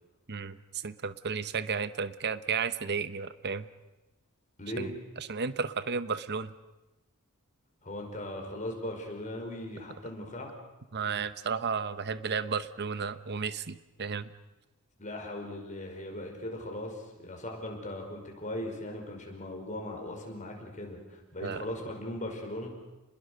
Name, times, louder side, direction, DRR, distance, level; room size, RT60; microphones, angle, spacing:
voice 1, 0.3-3.7 4.8-4.9 5.2-6.5 10.9-14.3 21.4-21.6, right 5 dB, 50° right, 14 dB, 0.9 m, -33 dB
voice 2, 4.6-4.9 7.8-10.6 15.0-22.7, left 1 dB, 35° left, 2 dB, 5.4 m, -38 dB
30.0 x 21.0 x 6.5 m, 1.0 s
head